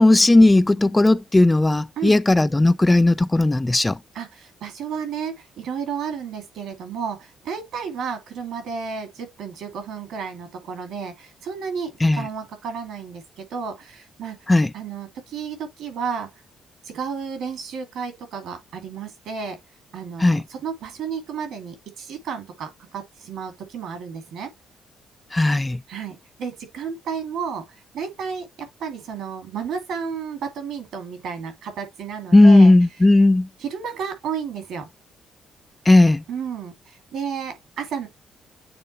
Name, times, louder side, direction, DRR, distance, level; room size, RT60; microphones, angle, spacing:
voice 1, 0.0-4.0 12.0-12.2 14.5-14.7 20.2-20.4 25.3-25.8 32.3-33.5 35.9-36.2, left 2 dB, 15° left, 0.4 m, -15 dB
voice 2, 4.1-14.4 14.7-16.3 16.8-19.6 19.9-24.5 25.9-32.7 33.6-34.9 36.3-38.1, right 6 dB, 80° right, 2.6 m, -32 dB
8.8 x 3.7 x 3.1 m
cardioid pair, 90°, 0 cm